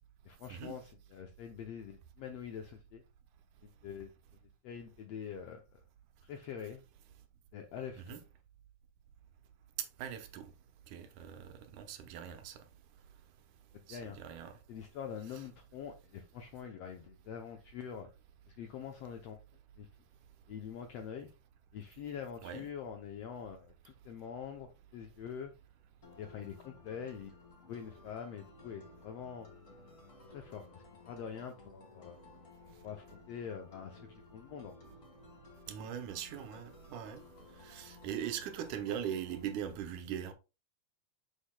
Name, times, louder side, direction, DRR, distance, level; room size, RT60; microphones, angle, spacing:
voice 1, 0.2-3.0 3.6-4.1 4.6-5.8 6.2-6.8 7.5-8.2 13.7-14.2 14.7-18.1 18.5-19.4 19.8-19.9 20.5-21.3 21.7-25.5 26.2-27.4 27.7-29.5 30.3-32.2 32.8-34.7, left 7 dB, 80° left, 1.4 m, -45 dB
voice 2, 10.0-10.5 10.9-12.6 13.9-14.5 22.4-22.7 35.7-37.2 37.6-40.3, right 9 dB, 75° right, 2.3 m, -41 dB
sound 1, 26.0-39.7, left 3 dB, 30° left, 1.8 m, -57 dB
7.3 x 6.7 x 2.2 m
omnidirectional pair, 3.7 m